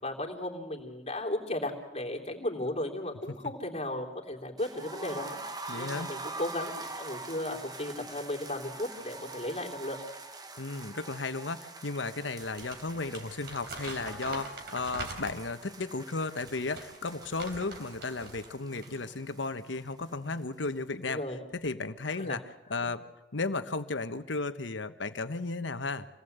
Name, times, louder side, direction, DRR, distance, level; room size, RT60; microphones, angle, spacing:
voice 1, 0.0-5.4 5.8-10.0 21.0-21.4 22.2-22.4 22.8-22.9, left 1 dB, 35° left, 1 dB, 3.4 m, -35 dB
sound 1, 4.6-20.4 20.7-20.8 21.1-21.2, right 3 dB, 20° right, 1.3 m, -45 dB
voice 2, 5.7-6.1 10.6-21.2 21.5-22.4 22.7-23.0 23.3-26.1, left 3 dB, 80° left, 10 dB, 1.2 m, -34 dB
Crumpling crinkling, 12.4-15.6 16.2-18.5 18.8-19.0, right 2 dB, 60° right, 3.8 m, -43 dB
27.0 x 19.0 x 8.1 m, 1.1 s
head